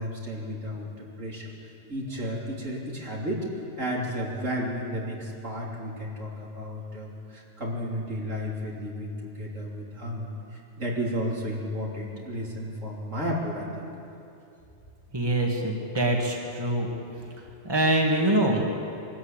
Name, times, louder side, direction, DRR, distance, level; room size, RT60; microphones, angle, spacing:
voice 1, 0.0-1.5 1.9-3.5 3.8-13.7, equal, 80° right, -3 dB, 3.7 m, -33 dB
voice 2, 15.1-16.9 17.6-18.7, right 1 dB, 20° right, 0 dB, 2.1 m, -24 dB
23.0 x 13.0 x 9.0 m, 2.6 s
omnidirectional pair, 1.3 m